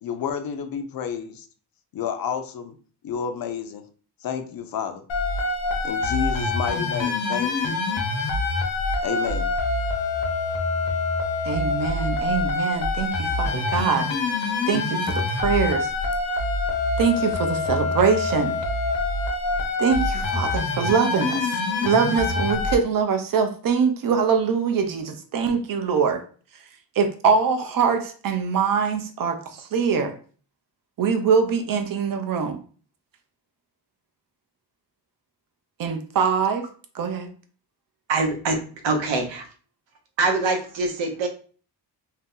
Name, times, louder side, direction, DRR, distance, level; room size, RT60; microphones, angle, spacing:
voice 1, 0.0-1.5 1.9-2.8 3.0-3.9 4.2-5.0 5.8-7.8 9.0-9.5, left 8 dB, 55° left, 8 dB, 0.5 m, -30 dB
sound 1, 5.1-22.7, left 3 dB, 80° left, 0.8 m, -25 dB
voice 2, 11.4-14.1 14.7-15.9 17.0-18.6 19.8-21.5 21.8-26.2 27.0-30.1 31.0-32.6 35.8-36.7 36.9-37.3, right 6 dB, 50° right, 6 dB, 0.5 m, -23 dB
voice 3, 38.1-39.5 40.2-41.3, right 3 dB, 90° right, 4 dB, 0.8 m, -24 dB
2.7 x 2.0 x 3.6 m, 0.41 s
wide cardioid pair, 150°, 43 cm